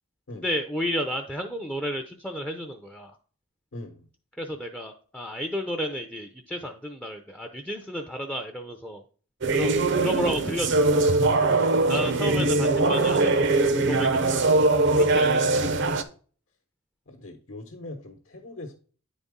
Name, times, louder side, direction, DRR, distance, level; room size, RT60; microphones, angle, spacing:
voice 1, 0.3-3.1 4.4-9.0 9.5-11.0 11.8-15.5, equal, 5° left, 4 dB, 0.5 m, -32 dB
voice 2, 3.7-4.1 17.1-18.8, left 2 dB, 60° left, 3 dB, 0.9 m, -42 dB
sound 1, 9.4-16.0, right 2 dB, 55° right, 0.7 m, -22 dB
9.7 x 4.1 x 3.6 m, 0.41 s
head